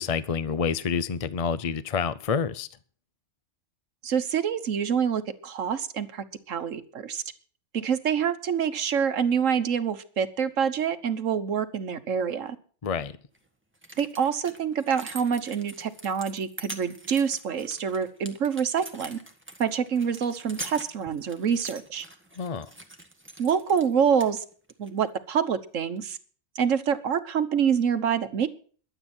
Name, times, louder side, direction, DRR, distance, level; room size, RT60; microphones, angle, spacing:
voice 1, 0.0-2.7 12.8-13.2 22.4-22.7, left 6 dB, 40° left, 0.5 m, -28 dB
voice 2, 4.0-7.2 7.7-12.6 14.0-19.2 19.6-22.0 23.4-24.4 24.8-26.2 26.5-28.5, right 7 dB, 75° right, 1.4 m, -26 dB
sound 1, 13.3-13.4 13.8-23.9 24.2-24.9 26.0-26.1, right 1 dB, 10° right, 1.5 m, -44 dB
22.5 x 8.1 x 4.3 m
omnidirectional pair, 1.3 m